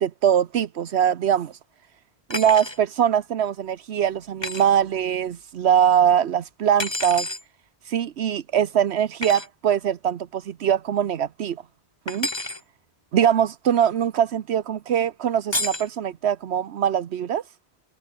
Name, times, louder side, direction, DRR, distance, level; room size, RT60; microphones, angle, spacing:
voice 1, 0.0-1.5 2.3-7.3 7.9-11.6 12.1-12.3 13.1-17.4, right 9 dB, 85° right, 1.1 m, -22 dB
sound 1, 2.3-2.8 4.4-4.7 6.8-7.4 9.2-9.5 12.1-12.6 15.5-15.9, left 2 dB, 25° left, 1.9 m, -29 dB
omnidirectional pair, 1.1 m